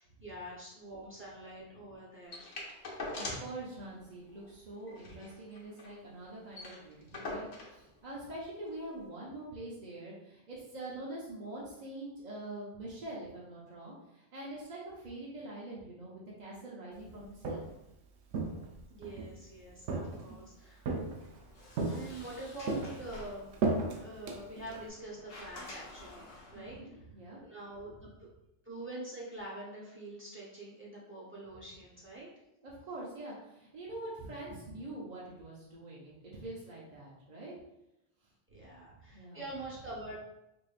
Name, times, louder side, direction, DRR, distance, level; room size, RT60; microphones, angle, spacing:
voice 1, 0.0-2.5 18.5-20.9 21.9-23.5 24.0-27.1 27.4-28.1 28.6-32.3 38.5-40.2, right 1 dB, 10° right, -6 dB, 0.9 m, -45 dB
sound 1, 2.3-3.6 3.9-4.0 4.3-4.5 4.9-6.0 6.2-6.3 6.5-7.8 8.7-8.8, left 2 dB, 80° left, 1.2 m, -42 dB
voice 2, 3.1-17.7 26.5-27.4 32.6-37.5 38.5-39.4, right 2 dB, 40° right, -6 dB, 0.7 m, -45 dB
Walk footsteps, 17.2-17.8 18.3-19.3 19.9-20.4 20.9-21.4 21.8-22.4 22.7-24.9, right 3 dB, 85° right, 1.0 m, -35 dB
Sliding door, 21.2-26.8, left 2 dB, 55° left, 0.9 m, -51 dB
4.8 x 2.6 x 2.4 m, 0.88 s
omnidirectional pair, 1.3 m